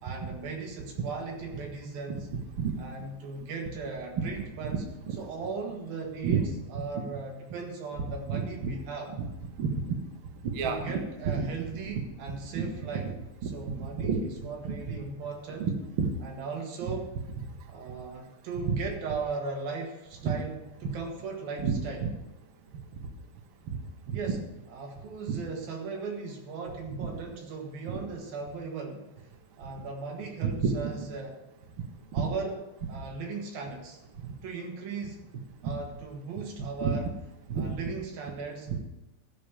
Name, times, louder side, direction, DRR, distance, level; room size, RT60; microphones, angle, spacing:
voice 1, 0.0-2.3 2.8-4.8 5.2-9.1 10.6-13.1 13.4-15.7 16.2-17.1 17.7-22.0 24.1-24.4 24.7-29.1 29.6-31.4 32.1-32.6 32.9-34.0 34.4-35.2 35.6-37.1 37.6-38.7, right 4 dB, 80° right, 1 dB, 3.5 m, -37 dB
voice 2, 2.3-2.7 4.2-4.3 5.1-5.2 6.2-6.4 8.3-8.7 9.2-9.3 9.6-10.0 10.4-10.9 11.4-11.5 12.5-12.7 13.4-14.2 14.6-15.0 15.6-15.7 16.0-16.1 18.7-18.8 20.2-20.3 21.6-21.7 22.0-22.1 23.7-23.8 24.1-24.2 25.3-25.4 27.9-28.0 30.4-30.7 32.2-32.3 34.2-34.3 35.6-35.7 36.8-37.0 37.5-37.8 38.7-38.8, right 6 dB, 65° right, 3 dB, 1.2 m, -29 dB
13.0 x 5.2 x 7.3 m, 1.0 s
omnidirectional pair, 4.1 m